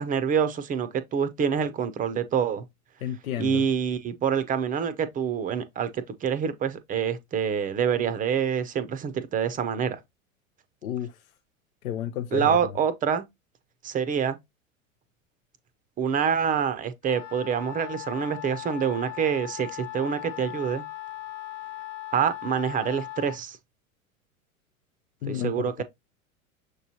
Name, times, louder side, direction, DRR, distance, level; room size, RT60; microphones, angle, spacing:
voice 1, 0.0-2.6 3.4-10.0 12.3-13.3 13.8-14.4 16.0-20.8 22.1-23.6 25.3-25.8, right 7 dB, 20° right, 0.5 m, -26 dB
voice 2, 3.0-3.6 10.8-11.1 11.8-12.6 25.2-25.5 25.8-25.9, left 11 dB, 85° left, 0.6 m, -31 dB
Wind instrument woodwind instrument, 17.0-23.4, left 15 dB, 50° left, 1.0 m, -38 dB
6.4 x 3.0 x 2.7 m
hypercardioid pair, 95°, 41 cm